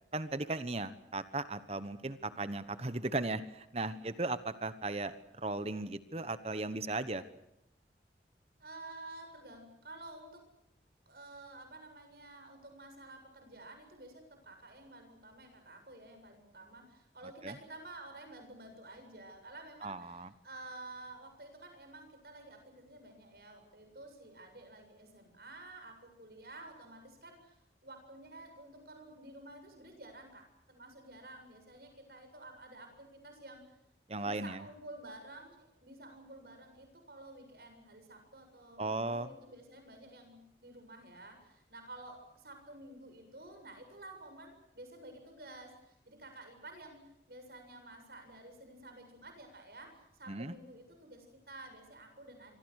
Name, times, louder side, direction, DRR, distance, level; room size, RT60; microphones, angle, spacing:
voice 1, 0.1-7.2 17.4-17.5 19.8-20.3 34.1-34.6 38.8-39.3 50.3-50.5, right 2 dB, 35° right, 13 dB, 1.1 m, -37 dB
voice 2, 8.6-10.5 11.1-33.8 34.2-52.6, right 2 dB, 60° right, 6 dB, 7.5 m, -51 dB
27.0 x 24.5 x 6.5 m, 0.83 s
head